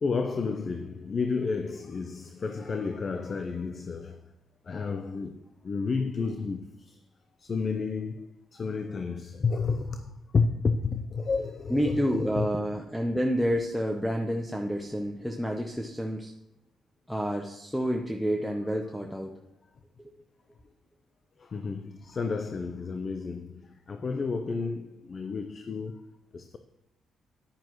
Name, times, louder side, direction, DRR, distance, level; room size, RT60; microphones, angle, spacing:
voice 1, 0.0-4.2 4.7-5.4 5.6-6.9 7.4-12.5 21.4-23.6 23.9-26.6, left 4 dB, 40° left, 0.6 m, -31 dB
voice 2, 11.7-16.3 17.1-19.3 20.0-20.1, equal, ahead, 0.8 m, -29 dB
10.0 x 9.1 x 3.1 m
cardioid pair, 90°, 0 cm